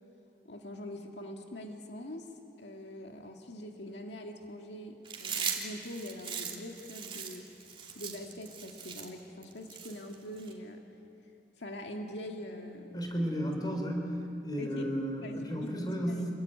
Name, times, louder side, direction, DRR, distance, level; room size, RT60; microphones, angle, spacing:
voice 1, 0.4-2.3 2.6-7.5 8.0-10.8 11.6-13.0 14.6-14.9 15.2-16.3, left 1 dB, 80° left, 2 dB, 2.0 m, -43 dB
Chewing mastication, 5.1-10.5, right 7 dB, 30° right, 3.1 m, -39 dB
voice 2, 12.9-14.1 14.4-16.3, equal, 25° left, 2 dB, 4.5 m, -33 dB
28.0 x 22.5 x 9.4 m, 2.8 s
head